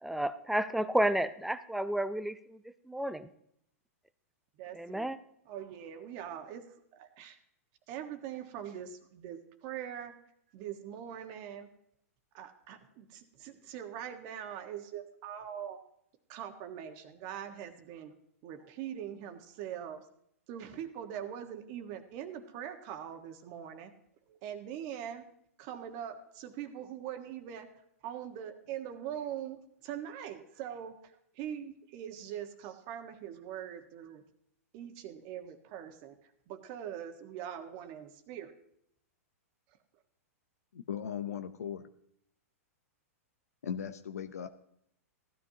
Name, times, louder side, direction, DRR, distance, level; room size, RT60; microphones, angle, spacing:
voice 1, 0.0-2.6 2.9-3.3 4.7-5.2, right 1 dB, ahead, 13 dB, 0.5 m, -31 dB
voice 2, 4.6-5.1 5.4-7.4 7.9-10.1 10.5-11.7 12.3-15.8 16.3-18.1 18.4-20.0 20.5-23.9 24.3-25.2 25.6-27.7 28.0-34.2 34.7-36.2 36.5-38.5, right 9 dB, 45° right, 7 dB, 1.5 m, -42 dB
voice 3, 40.7-41.9 43.6-44.5, left 8 dB, 85° left, 8 dB, 0.7 m, -38 dB
16.0 x 12.5 x 2.9 m, 0.71 s
hypercardioid pair, 125°, 8 cm